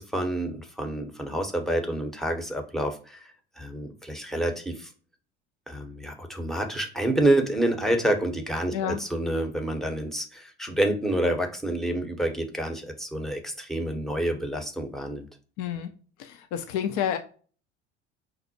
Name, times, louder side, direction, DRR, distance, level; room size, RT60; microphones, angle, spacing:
voice 1, 0.0-3.2 3.6-4.9 5.7-15.3, right 1 dB, ahead, 0.7 m, -28 dB
voice 2, 15.6-15.9 16.2-17.2, left 9 dB, 50° left, 0.5 m, -29 dB
5.3 x 2.0 x 2.7 m
figure-of-eight pair, 65°, 34 cm